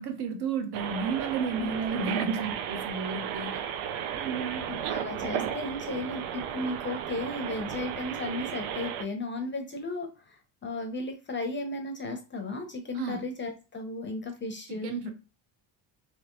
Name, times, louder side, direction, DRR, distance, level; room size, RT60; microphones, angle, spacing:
voice 1, 0.0-3.6 4.1-4.7 12.9-13.2 14.7-15.1, right 5 dB, 50° right, 0.9 m, -32 dB
sound 1, 0.7-9.0, right 9 dB, 80° right, 0.7 m, -34 dB
voice 2, 4.7-15.1, left 2 dB, 25° left, 0.6 m, -35 dB
3.5 x 3.0 x 3.0 m
cardioid pair, 135°, 49 cm